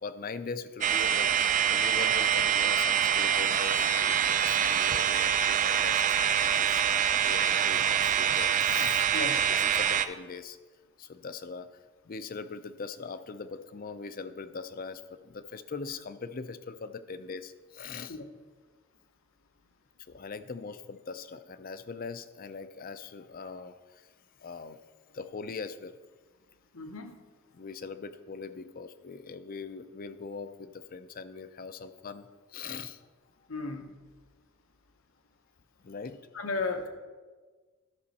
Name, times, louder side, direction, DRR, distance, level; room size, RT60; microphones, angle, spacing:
voice 1, 0.0-10.6 11.0-11.8 12.0-18.2 20.1-24.1 24.4-24.8 25.1-26.0 27.5-33.0 35.8-36.2, left 5 dB, 45° left, 12 dB, 0.5 m, -41 dB
sound 1, 0.8-10.1, right 8 dB, 40° right, 0.4 m, -25 dB
voice 2, 26.7-27.2 33.5-33.9 36.3-36.9, left 3 dB, 85° left, 5 dB, 1.1 m, -34 dB
13.0 x 6.2 x 4.2 m, 1.4 s
head